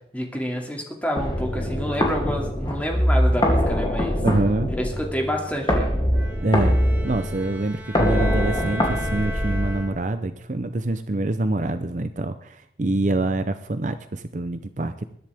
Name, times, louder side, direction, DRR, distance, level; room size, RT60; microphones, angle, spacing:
voice 1, 0.1-4.2 4.8-5.9, equal, 10° left, 0 dB, 2.5 m, -28 dB
sound 1, 1.2-10.1, equal, 25° left, 2.7 m, -23 dB
voice 2, 4.2-4.7 6.4-6.8 7.0-15.1, right 2 dB, 45° right, 10 dB, 0.6 m, -25 dB
Bowed string instrument, 6.1-10.3, left 1 dB, 10° right, 3.5 m, -35 dB
21.0 x 10.5 x 3.5 m, 0.68 s
head